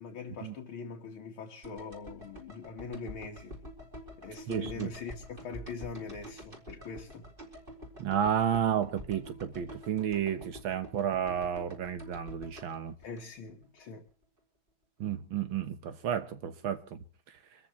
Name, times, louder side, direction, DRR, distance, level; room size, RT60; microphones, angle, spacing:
voice 1, 0.0-3.6 4.2-7.3 13.0-14.1, left 4 dB, 70° left, 2.4 m, -42 dB
sound 1, 1.6-13.8 14.1-14.2, equal, 25° right, 4.5 m, -48 dB
voice 2, 4.5-4.9 8.0-12.9 15.0-17.0, right 9 dB, 65° right, 1.8 m, -31 dB
25.5 x 14.0 x 3.1 m
omnidirectional pair, 2.4 m